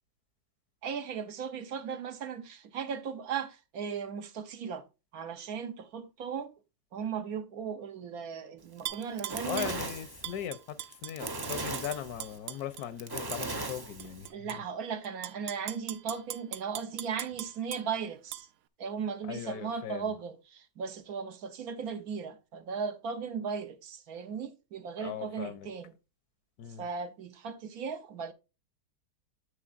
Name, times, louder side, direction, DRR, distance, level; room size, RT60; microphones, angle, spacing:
voice 1, 0.8-4.8 5.1-6.5 6.9-9.7 14.3-18.5 18.8-25.9 26.8-28.3, right 6 dB, 70° right, 1.3 m, -37 dB
Fire, 8.8-14.3, right 2 dB, 30° right, 0.4 m, -38 dB
Tap / Glass, 8.9-9.8 10.2-12.8 13.3-13.4 14.0-14.6 15.0-17.8 18.3-18.4, right 13 dB, 85° right, 1.2 m, -40 dB
voice 2, 9.4-14.6 19.2-20.1 25.0-25.7 26.6-26.8, left 10 dB, 75° left, 1.2 m, -39 dB
9.7 x 7.8 x 2.5 m
omnidirectional pair, 1.7 m